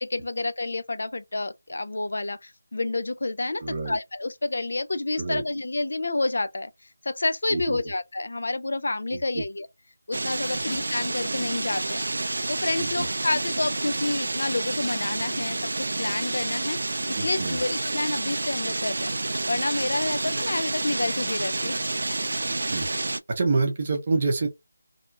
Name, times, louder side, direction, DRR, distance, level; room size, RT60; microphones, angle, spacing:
voice 1, 0.0-6.7 7.0-9.7 10.1-12.1 12.5-16.8 17.1-19.1 19.5-21.8, left 2 dB, 60° left, 0.3 m, -29 dB
voice 2, 3.6-4.0 5.2-5.4 7.5-7.8 9.1-9.4 10.7-10.8 12.8-13.1 17.2-17.6 22.5-22.9 23.3-24.5, right 3 dB, 25° right, 0.7 m, -27 dB
sound 1, 10.1-23.2, right 2 dB, 60° right, 0.3 m, -29 dB
2.8 x 2.2 x 2.5 m
figure-of-eight pair, 175°, 0 cm